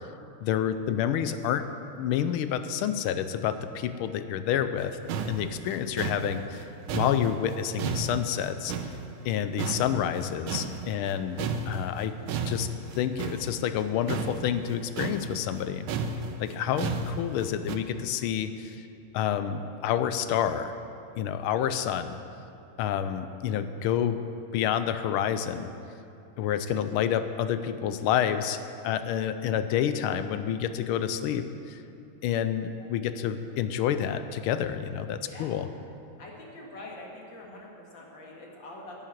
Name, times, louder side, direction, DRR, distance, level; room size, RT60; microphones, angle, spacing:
voice 1, 0.4-1.7 2.0-5.0 5.3-6.6 6.9-8.7 9.2-12.2 12.5-12.7 13.0-15.9 16.4-18.8 19.1-20.8 21.2-22.2 22.8-24.2 24.5-25.7 26.4-28.6 28.8-31.8 32.2-35.7, left 9 dB, 80° left, 11 dB, 1.5 m, -28 dB
sound 1, 4.8-4.9 5.1-9.3 9.6-11.1 11.4-17.8, right 4 dB, 75° right, 1.5 m, -33 dB
voice 2, 35.3-35.7 36.2-38.9, left 2 dB, 60° left, -2 dB, 2.6 m, -45 dB
10.5 x 7.3 x 9.3 m, 2.7 s
omnidirectional pair, 2.3 m